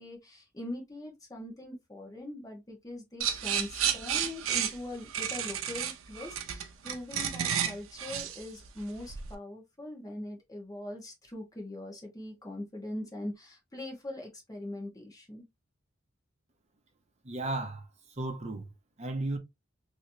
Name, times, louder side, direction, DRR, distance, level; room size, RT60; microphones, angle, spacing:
voice 1, 0.0-15.4, left 1 dB, 20° left, 1.2 m, -42 dB
sound 1, 3.2-9.3, right 9 dB, 90° right, 0.6 m, -32 dB
voice 2, 17.2-18.7 19.0-19.4, right 2 dB, 35° right, 0.8 m, -35 dB
3.1 x 2.9 x 2.7 m
head